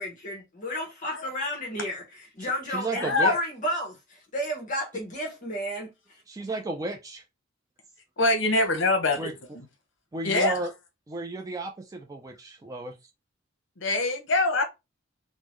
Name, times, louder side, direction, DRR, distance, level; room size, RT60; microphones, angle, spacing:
voice 1, 0.0-2.0 2.3-5.9, left 1 dB, 40° left, 0.9 m, -32 dB
voice 2, 2.4-3.3 6.3-7.2 9.2-9.3 10.1-10.7 11.1-13.0, right 2 dB, 15° right, 0.3 m, -33 dB
voice 3, 2.9-3.4 8.2-9.7 10.2-10.6 13.8-14.6, left 2 dB, 65° left, 0.9 m, -24 dB
3.5 x 2.0 x 3.0 m
head